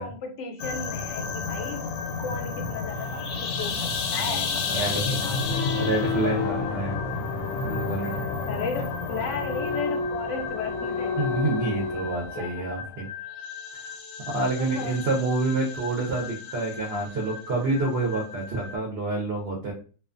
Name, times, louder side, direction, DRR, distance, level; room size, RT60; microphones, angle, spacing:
voice 1, 0.0-1.9 2.2-5.7 8.0-11.3 12.4-12.7 14.6-15.2, left 5 dB, 65° left, 4 dB, 0.8 m, -35 dB
sound 1, 0.6-18.8, left 4 dB, 85° left, 1.1 m, -32 dB
voice 2, 4.2-5.0 5.8-7.0 7.6-8.2 11.2-13.1 13.7-14.0 14.3-19.7, right 3 dB, 55° right, -2 dB, 0.7 m, -28 dB
sound 2, 5.4-12.4, left 5 dB, 20° right, 0.9 m, -32 dB
2.4 x 2.3 x 2.4 m, 0.38 s
omnidirectional pair, 1.6 m